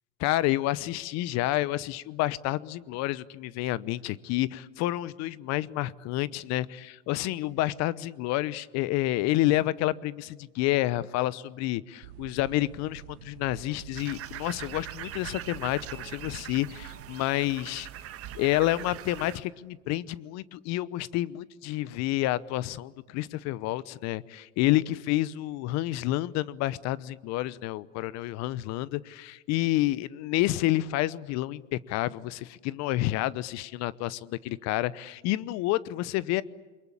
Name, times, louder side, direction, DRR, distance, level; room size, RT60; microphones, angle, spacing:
voice 1, 0.2-17.9 18.3-36.4, left 16 dB, 45° left, 19 dB, 0.9 m, -29 dB
sound 1, 12.0-17.2, right 15 dB, 65° right, 0.8 m, -48 dB
sound 2, 13.9-19.4, right 12 dB, 40° right, 1.6 m, -42 dB
29.0 x 23.0 x 8.5 m, 1.2 s
hypercardioid pair, 90°, 37 cm